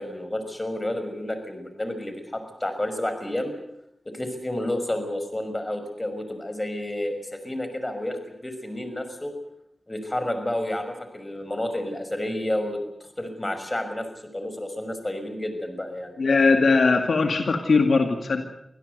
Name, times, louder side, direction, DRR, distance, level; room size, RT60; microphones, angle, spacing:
voice 1, 0.0-3.5 4.1-9.3 9.9-12.8 13.2-14.1 14.3-16.1, left 1 dB, 25° left, 8 dB, 5.7 m, -30 dB
voice 2, 16.2-18.4, left 4 dB, 80° left, 5 dB, 2.1 m, -20 dB
25.0 x 16.5 x 8.1 m, 0.78 s
cardioid pair, 45°, 0 cm